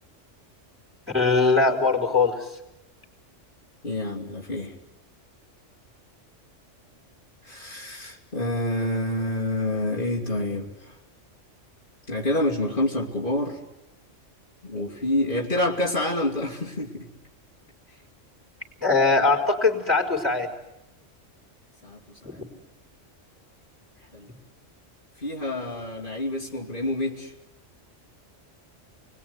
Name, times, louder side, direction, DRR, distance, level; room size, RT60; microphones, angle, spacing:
voice 1, 1.1-2.5 18.8-20.5 22.2-22.4, left 3 dB, 10° right, 3 dB, 4.3 m, -21 dB
voice 2, 3.8-4.7 7.4-11.0 12.1-13.6 14.6-17.1 21.8-22.4 24.1-24.3 25.2-27.3, left 1 dB, 45° left, -2 dB, 2.9 m, -28 dB
28.5 x 21.5 x 9.6 m, 0.87 s
omnidirectional pair, 1.3 m